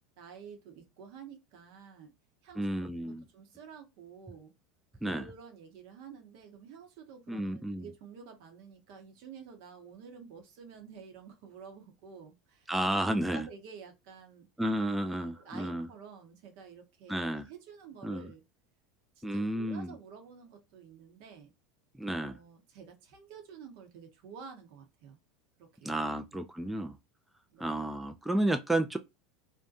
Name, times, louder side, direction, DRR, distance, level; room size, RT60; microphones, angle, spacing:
voice 1, 0.2-2.1 2.4-2.7 3.0-4.5 5.0-14.5 15.0-18.4 19.2-21.5 22.2-25.2 25.6-26.0 27.5-27.9, right 6 dB, 65° right, 0.8 m, -50 dB
voice 2, 2.6-3.2 5.0-5.2 7.3-7.9 12.7-13.5 14.6-15.9 17.1-17.5 18.0-18.3 19.2-19.9 22.0-22.4 25.8-26.9 27.6-29.0, right 1 dB, 5° right, 0.3 m, -31 dB
2.6 x 2.2 x 2.4 m
hypercardioid pair, 85°, 2 cm